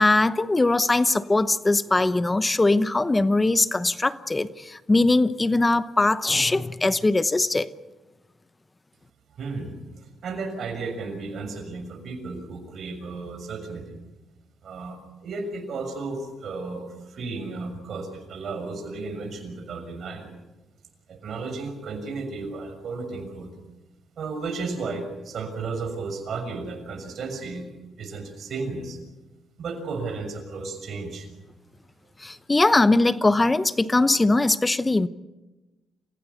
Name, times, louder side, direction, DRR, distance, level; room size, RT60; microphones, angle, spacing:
voice 1, 0.0-7.7 32.2-35.1, left 2 dB, 20° left, 14 dB, 0.9 m, -21 dB
voice 2, 9.4-14.0 14.6-20.3 21.1-23.5 24.2-27.7 28.0-29.0 29.6-31.3, right 3 dB, 60° right, 6 dB, 6.5 m, -34 dB
27.5 x 16.5 x 8.3 m, 1.1 s
cardioid pair, 90°, 0 cm